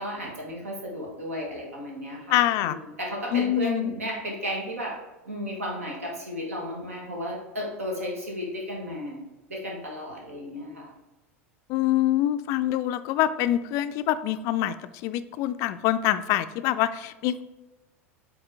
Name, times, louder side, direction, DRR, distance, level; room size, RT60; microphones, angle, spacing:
voice 1, 0.0-5.0 5.2-9.2 9.5-10.9, equal, 75° right, -1 dB, 1.4 m, -34 dB
voice 2, 2.3-2.8 3.3-3.9 11.7-14.7 15.0-17.4, left 13 dB, 45° left, 12 dB, 0.3 m, -25 dB
7.9 x 3.5 x 3.6 m, 1.0 s
figure-of-eight pair, 80°, 8 cm